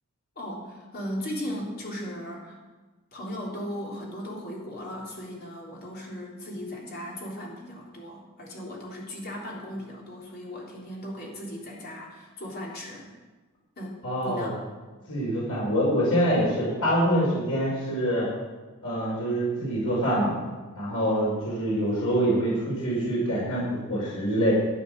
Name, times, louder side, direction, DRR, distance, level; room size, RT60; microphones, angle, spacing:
voice 1, 0.4-2.6 3.1-13.1 13.8-14.7, equal, 45° left, -3 dB, 3.6 m, -37 dB
voice 2, 14.0-14.5 15.1-18.3 18.8-20.3 20.7-24.5, equal, 90° left, -6 dB, 5.0 m, -25 dB
13.0 x 8.4 x 6.4 m, 1.3 s
head